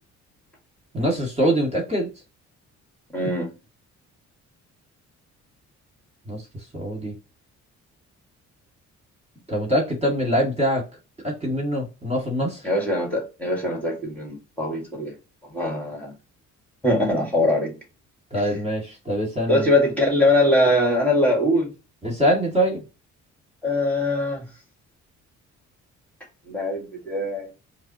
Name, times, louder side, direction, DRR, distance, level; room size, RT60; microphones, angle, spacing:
voice 1, 0.9-2.1 6.3-6.4 6.7-7.1 9.5-10.8 11.2-12.6 18.3-19.6 22.0-22.8, equal, 20° right, 1.9 m, -23 dB
voice 2, 3.1-3.5 12.6-15.1 15.4-16.1 16.8-17.8 19.5-21.7 23.6-24.5 26.5-27.5, left 1 dB, 5° left, 1.7 m, -22 dB
4.6 x 2.0 x 2.9 m
cardioid pair, 90°, 30 cm